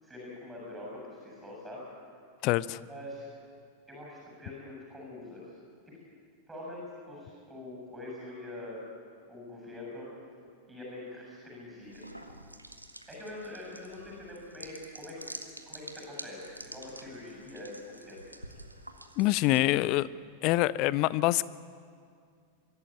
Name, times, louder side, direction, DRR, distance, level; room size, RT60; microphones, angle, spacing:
voice 1, 0.0-1.8 2.9-3.3 3.9-5.5 6.5-8.8 9.3-10.1 10.7-12.0 13.0-15.4 15.7-18.2, left 1 dB, 10° right, -3 dB, 7.7 m, -44 dB
voice 2, 2.4-2.8 19.2-20.1 20.4-21.4, left 17 dB, 40° left, 20 dB, 0.5 m, -25 dB
sound 1, 11.8-19.9, right 1 dB, 85° right, 1.3 m, -48 dB
24.0 x 13.5 x 8.9 m, 2.2 s
figure-of-eight pair, 90°, 0 cm